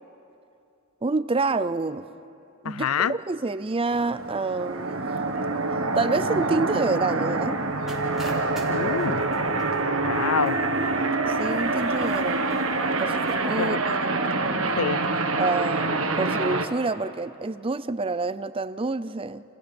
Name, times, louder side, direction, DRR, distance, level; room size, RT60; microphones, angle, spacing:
voice 1, 1.0-2.1 2.6-5.1 5.9-7.6 11.2-12.6 13.0-14.1 15.4-19.4, right 3 dB, 25° right, 0.5 m, -27 dB
voice 2, 2.6-3.2 8.7-9.2 10.0-10.6 13.6-13.8 14.8-15.0, left 7 dB, 85° left, 0.5 m, -26 dB
sound 1, 3.9-16.7, right 3 dB, 75° right, 1.6 m, -26 dB
sound 2, 7.9-13.7, right 1 dB, ahead, 3.5 m, -47 dB
29.5 x 29.0 x 5.3 m
head